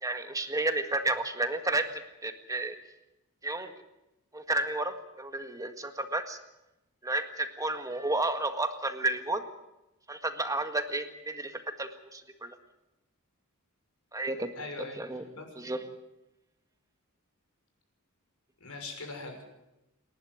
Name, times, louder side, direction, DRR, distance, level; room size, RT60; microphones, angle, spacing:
voice 1, 0.0-2.8 3.4-3.7 4.3-6.4 7.0-9.4 10.1-12.6 14.1-14.5 15.0-15.2 15.6-15.8, right 2 dB, 15° right, 7 dB, 1.7 m, -32 dB
voice 2, 14.6-15.0 15.3-15.5 18.6-19.4, left 3 dB, 75° left, 3 dB, 6.4 m, -40 dB
27.5 x 11.5 x 9.5 m, 0.93 s
head